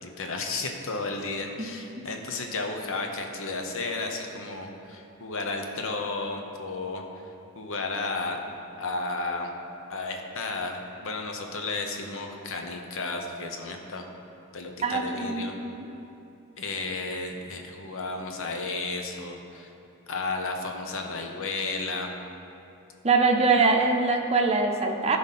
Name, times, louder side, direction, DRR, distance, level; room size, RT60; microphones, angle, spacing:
voice 1, 0.0-7.0 7.6-8.4 8.8-9.5 9.9-14.0 14.5-15.6 16.6-19.7 20.1-22.1, left 3 dB, 60° left, 3 dB, 0.9 m, -33 dB
voice 2, 14.8-15.7 23.0-25.2, right 4 dB, 30° right, 3 dB, 0.7 m, -23 dB
13.5 x 5.3 x 4.2 m, 2.8 s
head